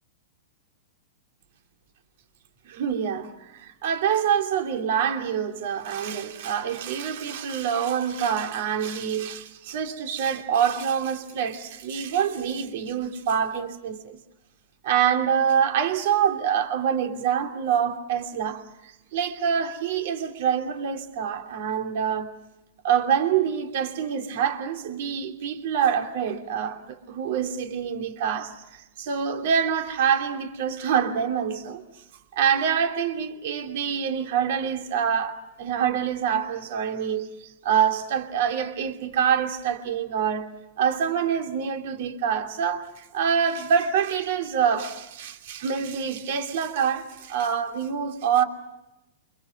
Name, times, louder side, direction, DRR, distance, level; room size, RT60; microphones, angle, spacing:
voice 1, 2.7-14.2 14.8-22.3 22.8-31.8 32.3-40.5 40.8-48.4, right 8 dB, 60° right, 2.7 m, -26 dB
29.0 x 25.5 x 6.0 m
hypercardioid pair, 140°, 0 cm